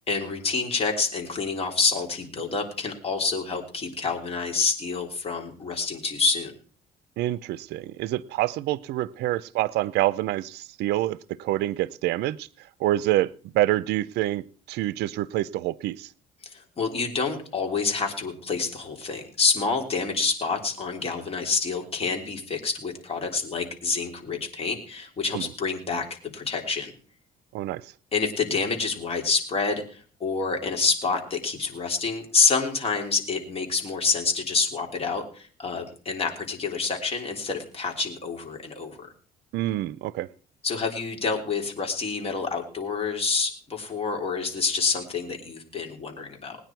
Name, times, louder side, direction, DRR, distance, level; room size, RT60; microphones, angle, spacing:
voice 1, 0.1-6.5 16.5-26.9 28.1-39.1 40.6-46.6, left 4 dB, 35° left, 2 dB, 3.3 m, -27 dB
voice 2, 7.2-12.5 12.8-16.1 25.3-25.5 27.5-27.9 39.5-40.3, right 15 dB, 80° right, 21 dB, 0.6 m, -27 dB
20.0 x 9.6 x 4.6 m, 0.43 s
cardioid pair, 110°, 17 cm